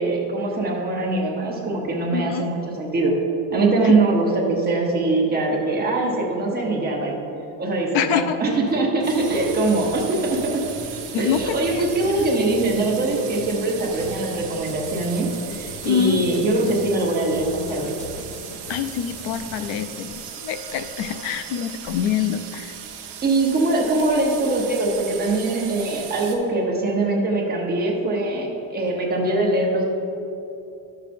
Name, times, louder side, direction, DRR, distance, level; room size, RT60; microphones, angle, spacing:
voice 1, 0.0-3.2 3.5-7.2 7.6-10.6 11.2-17.9 23.2-29.8, right 2 dB, 20° right, -2 dB, 0.8 m, -22 dB
voice 2, 2.1-2.5 7.9-8.4 11.1-11.8 15.8-16.3 18.7-22.7, left 8 dB, 75° left, 10 dB, 0.5 m, -25 dB
sound 1, 8.4-19.6, left 1 dB, 55° left, 1.3 m, -41 dB
sound 2, 9.0-26.4, right 8 dB, 65° right, 1.0 m, -37 dB
11.0 x 6.7 x 2.6 m, 2.8 s
cardioid pair, 175°, 46 cm